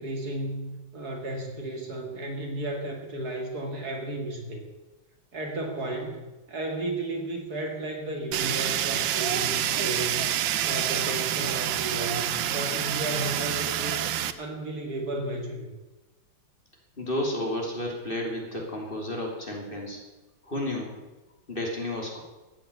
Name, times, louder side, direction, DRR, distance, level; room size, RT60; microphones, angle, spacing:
voice 1, 0.0-4.7 5.3-10.3 10.6-14.0 14.4-15.7, right 1 dB, 50° right, 3 dB, 2.4 m, -33 dB
Fire, 8.3-14.3, right 11 dB, 85° right, 1.5 m, -27 dB
voice 2, 17.0-20.0 20.4-21.0 21.5-22.2, left 1 dB, 25° left, 0 dB, 3.1 m, -31 dB
14.5 x 8.9 x 8.4 m, 1.1 s
omnidirectional pair, 2.1 m